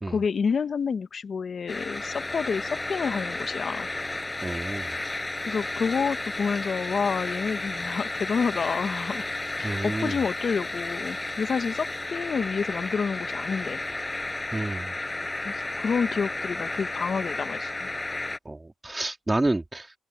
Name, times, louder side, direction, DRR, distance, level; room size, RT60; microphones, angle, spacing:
voice 1, 0.1-3.9 5.4-9.2 9.6-13.8 15.4-17.9, left 5 dB, 45° left, 1.3 m, -29 dB
sound 1, 1.7-18.4, left 2 dB, 15° left, 6.7 m, -33 dB
voice 2, 4.4-5.0 9.6-10.2 14.5-14.9 18.5-19.9, right 2 dB, 15° right, 2.2 m, -29 dB
cardioid pair, 90°, 0 cm